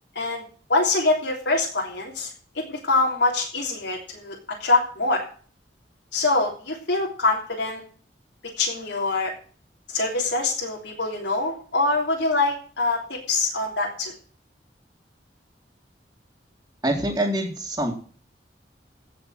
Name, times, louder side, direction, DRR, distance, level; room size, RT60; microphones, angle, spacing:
voice 1, 0.7-2.3 2.5-5.2 6.1-7.8 8.6-9.3 9.9-14.1, left 3 dB, 85° left, -1 dB, 3.2 m, -24 dB
voice 2, 16.8-17.9, right 1 dB, 20° right, -4 dB, 2.3 m, -25 dB
16.5 x 5.8 x 7.7 m, 0.42 s
head